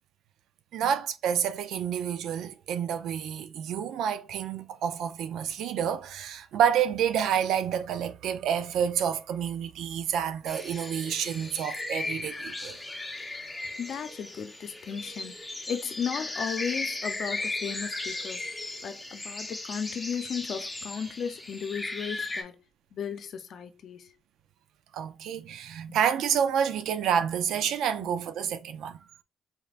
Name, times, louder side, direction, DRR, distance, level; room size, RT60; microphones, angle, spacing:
voice 1, 0.7-12.8 24.9-29.0, right 8 dB, 80° right, 0.5 m, -29 dB
Woodland dawn chorus Stereo, 10.5-22.4, left 2 dB, 10° left, 1.0 m, -36 dB
voice 2, 13.8-18.4 18.8-22.6 22.9-24.1 25.9-26.0 28.0-28.1, left 7 dB, 65° left, 0.7 m, -35 dB
4.3 x 3.3 x 2.5 m
cardioid pair, 90°, 0 cm